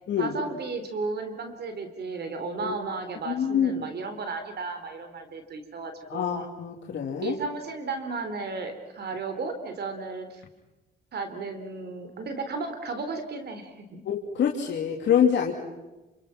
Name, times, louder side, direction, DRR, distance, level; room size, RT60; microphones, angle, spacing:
voice 1, 0.2-6.5 7.2-10.4 11.1-14.0, right 4 dB, 55° right, 8 dB, 3.5 m, -34 dB
voice 2, 3.3-3.9 6.1-7.4 14.0-15.5, left 8 dB, 65° left, 0 dB, 2.7 m, -25 dB
28.0 x 26.5 x 5.9 m, 1.1 s
cardioid pair, 90°, 20 cm